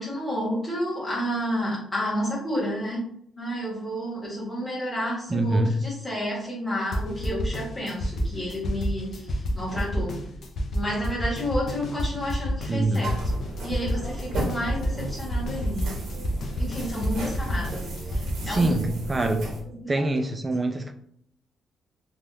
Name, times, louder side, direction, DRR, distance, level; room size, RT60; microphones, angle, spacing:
voice 1, 0.0-3.1 3.4-10.2 10.7-13.2 13.6-15.9 16.6-17.8 18.1-18.2 18.5-18.9 19.8-20.3, equal, 10° left, -7 dB, 1.3 m, -30 dB
voice 2, 5.3-5.7 12.7-13.1 18.4-19.5 19.9-20.9, right 2 dB, 15° right, 6 dB, 0.3 m, -24 dB
sound 1, 6.9-18.3, equal, 50° left, 0.5 m, -29 dB
sound 2, 13.0-19.6, right 1 dB, 75° right, 0.8 m, -34 dB
3.3 x 2.3 x 2.6 m, 0.67 s
cardioid pair, 160°, 0 cm